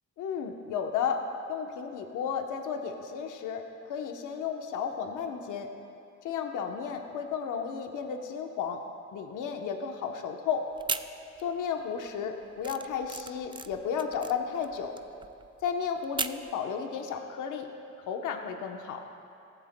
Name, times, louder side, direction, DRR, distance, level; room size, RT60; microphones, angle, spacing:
voice 1, 0.2-5.7 6.2-8.9 9.1-10.7 11.4-15.0 15.6-17.7 18.1-19.0, left 7 dB, 80° left, 4 dB, 1.0 m, -33 dB
sound 1, 10.7-11.7 12.0-16.5, right 4 dB, 15° right, 0.3 m, -37 dB
17.0 x 15.0 x 2.2 m, 2.6 s
cardioid pair, 90°, 30 cm